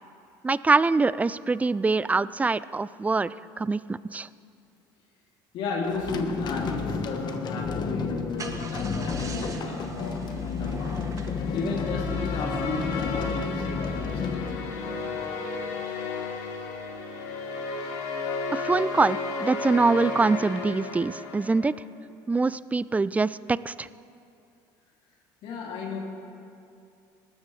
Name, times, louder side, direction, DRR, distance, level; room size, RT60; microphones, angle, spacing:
voice 1, 0.4-4.3 18.5-21.7 22.3-23.9, right 3 dB, 15° right, 18 dB, 0.3 m, -24 dB
voice 2, 5.5-11.2 11.5-14.4 18.5-18.6 25.4-26.0, left 3 dB, 65° left, -3 dB, 2.8 m, -33 dB
sound 1, 5.9-15.3, left 5 dB, 45° left, 1.2 m, -32 dB
Car / Engine starting, 8.0-12.7, right 3 dB, 35° right, 1.4 m, -41 dB
sound 2, 11.4-21.8, left 4 dB, 80° left, 2.0 m, -33 dB
19.5 x 13.5 x 3.3 m, 2.5 s
supercardioid pair, 85°, 10 cm